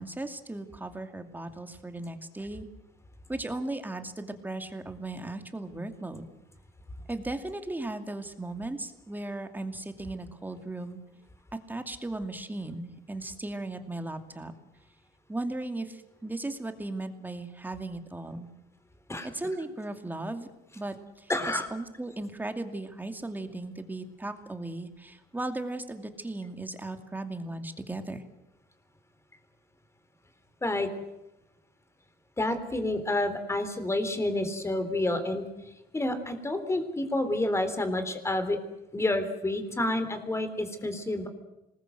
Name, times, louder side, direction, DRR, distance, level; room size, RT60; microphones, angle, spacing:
voice 1, 0.0-2.7 3.3-6.3 7.1-11.0 11.7-14.5 15.3-18.5 19.2-20.5 20.7-28.2, right 2 dB, 10° right, 7 dB, 2.5 m, -36 dB
voice 2, 21.3-21.7 30.6-30.9 32.4-35.4 35.9-38.6 38.9-41.3, left 1 dB, 15° left, 9 dB, 3.7 m, -29 dB
26.0 x 20.0 x 7.9 m, 0.91 s
cardioid pair, 110°, 17 cm